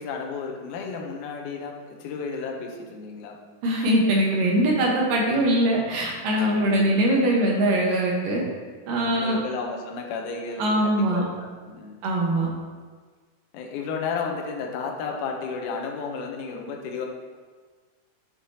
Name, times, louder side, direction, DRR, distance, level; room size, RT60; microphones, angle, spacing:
voice 1, 0.0-3.4 6.6-7.0 9.1-12.0 13.5-17.1, left 5 dB, 75° left, 1 dB, 2.1 m, -33 dB
voice 2, 3.6-8.4 8.9-9.4 10.6-11.2 12.0-12.5, right 1 dB, 75° right, -2 dB, 2.7 m, -22 dB
7.5 x 6.6 x 2.8 m, 1.5 s
omnidirectional pair, 4.0 m